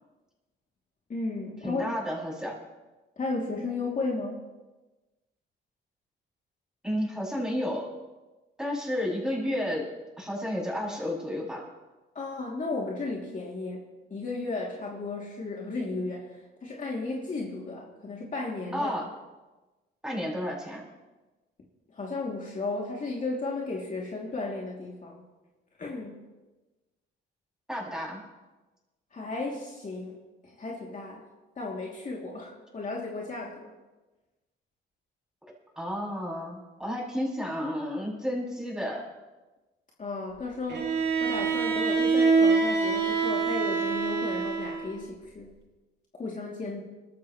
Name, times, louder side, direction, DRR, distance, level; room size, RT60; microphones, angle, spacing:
voice 1, 1.1-1.9 3.2-4.4 12.1-18.9 21.9-25.2 25.8-26.2 29.1-31.2 31.6-33.6 40.0-45.5 46.2-46.8, left 3 dB, 40° left, -3 dB, 2.8 m, -34 dB
voice 2, 1.6-2.5 6.8-7.9 8.6-9.9 10.2-11.6 18.7-19.1 20.0-20.8 27.7-28.2 35.8-39.0, equal, 5° right, -4 dB, 6.6 m, -31 dB
Bowed string instrument, 40.7-45.0, right 4 dB, 60° right, 2.8 m, -25 dB
23.5 x 13.5 x 3.2 m, 1.2 s
cardioid pair, 90°, 20 cm